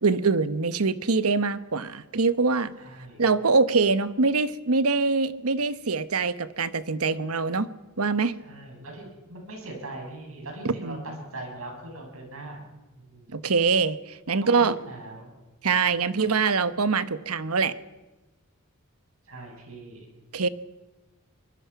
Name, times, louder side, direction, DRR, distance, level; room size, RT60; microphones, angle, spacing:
voice 1, 0.0-2.7 3.2-7.7 8.0-8.3 10.6-11.0 13.3-14.0 14.3-14.7 15.6-17.7 20.3-20.5, right 4 dB, 90° right, 13 dB, 1.1 m, -24 dB
voice 2, 2.8-3.2 8.4-12.6 12.9-13.3 14.4-15.3 19.3-20.1, right 2 dB, 70° right, 1 dB, 7.9 m, -41 dB
24.0 x 21.5 x 5.9 m, 1.1 s
head